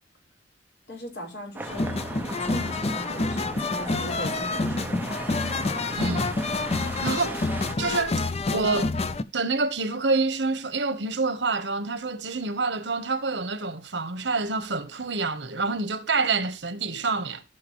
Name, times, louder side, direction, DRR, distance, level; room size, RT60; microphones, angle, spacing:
voice 1, 0.9-5.2, equal, 75° left, 4.9 m, -39 dB
sound 1, 1.5-7.8, right 1 dB, 10° right, 1.0 m, -36 dB
sound 2, 1.7-9.2, left 3 dB, 35° left, 0.6 m, -28 dB
voice 2, 6.0-6.3 7.0-7.4 7.8-8.9 9.3-17.4, right 3 dB, 70° right, 1.3 m, -27 dB
16.0 x 6.1 x 3.1 m
head